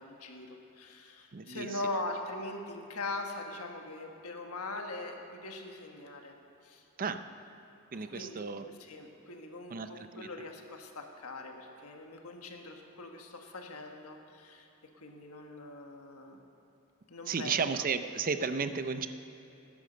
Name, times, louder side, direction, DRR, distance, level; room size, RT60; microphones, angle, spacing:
voice 1, 0.0-6.3 6.6-6.8 7.9-14.7 15.0-16.4 17.1-17.6, left 2 dB, 80° left, 3 dB, 1.4 m, -41 dB
voice 2, 1.3-1.7 7.0-7.3 7.9-8.7 9.7-10.3 17.3-19.1, right 5 dB, 40° right, 10 dB, 0.6 m, -33 dB
16.5 x 10.5 x 6.8 m, 3.0 s
head